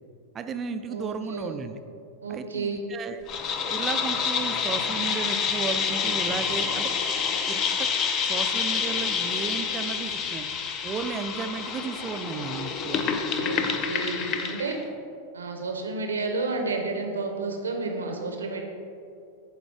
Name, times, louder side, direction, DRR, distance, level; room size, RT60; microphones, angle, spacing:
voice 1, 0.3-1.8 2.3-3.2 3.7-6.9 7.5-7.9 8.2-10.5 10.8-13.0, right 5 dB, 25° right, 9 dB, 0.4 m, -34 dB
voice 2, 0.9-1.5 2.2-2.8 13.4-14.8 15.3-18.6, right 3 dB, 70° right, 3 dB, 0.7 m, -31 dB
sound 1, 3.3-14.8, left 6 dB, 35° left, 0.5 m, -28 dB
8.7 x 3.8 x 3.5 m, 2.5 s
figure-of-eight pair, 90°, 0 cm